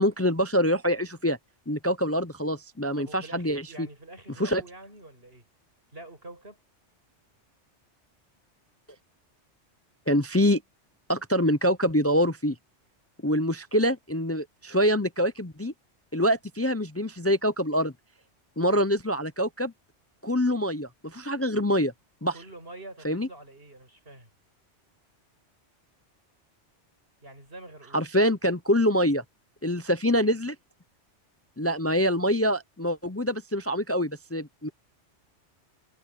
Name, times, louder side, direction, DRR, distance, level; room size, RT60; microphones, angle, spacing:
voice 1, 0.0-1.4 1.7-3.6 4.4-4.6 10.1-10.6 11.1-12.6 13.2-15.7 16.1-17.9 18.6-19.7 20.2-21.9 22.2-22.3 23.0-23.3 27.9-29.2 29.6-30.5 31.6-34.7, equal, 20° left, 0.4 m, -25 dB
voice 2, 2.9-5.5 5.9-6.6 22.3-24.3 27.2-28.0, right 2 dB, 55° right, 8.0 m, -46 dB
omnidirectional pair, 1.2 m